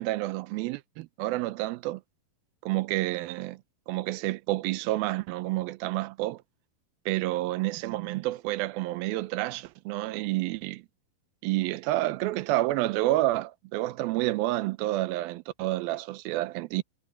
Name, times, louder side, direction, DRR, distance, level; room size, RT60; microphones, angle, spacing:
voice 1, 0.0-2.0 2.7-3.6 3.9-6.4 7.1-10.8 11.4-16.8, right 17 dB, 85° right, 2.6 m, -29 dB
omnidirectional pair, 4.3 m